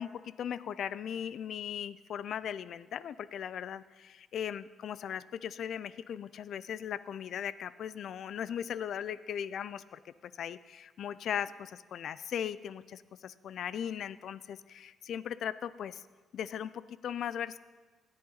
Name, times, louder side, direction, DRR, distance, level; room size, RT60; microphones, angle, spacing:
voice 1, 0.0-16.0 16.3-17.6, left 9 dB, 65° left, 17 dB, 0.4 m, -38 dB
17.5 x 10.5 x 4.0 m, 1.3 s
cardioid pair, 90°, 0 cm